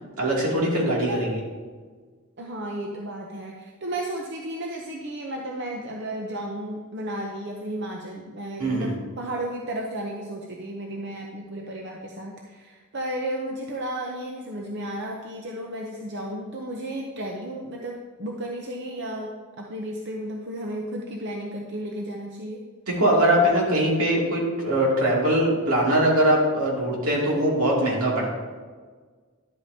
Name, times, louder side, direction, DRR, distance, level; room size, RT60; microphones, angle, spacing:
voice 1, 0.2-1.4 8.6-8.9 22.9-28.3, right 1 dB, 80° right, -3 dB, 2.6 m, -22 dB
voice 2, 0.9-1.2 2.4-22.6, right 1 dB, 50° right, 0 dB, 0.7 m, -33 dB
11.0 x 8.4 x 2.8 m, 1.5 s
head